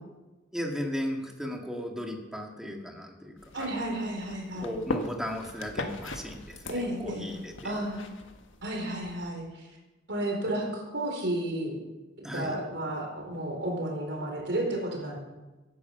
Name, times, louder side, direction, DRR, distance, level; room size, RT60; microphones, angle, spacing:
voice 1, 0.5-3.8 4.6-7.8 12.2-12.6, equal, 5° right, 2 dB, 1.9 m, -36 dB
sound 1, 3.4-9.3, left 2 dB, 85° left, 1.6 m, -40 dB
voice 2, 3.5-4.7 6.7-7.3 7.6-8.0 8.6-9.7 10.1-11.7 12.2-15.2, right 1 dB, 65° right, 1 dB, 4.3 m, -32 dB
15.5 x 11.0 x 5.8 m, 1.1 s
head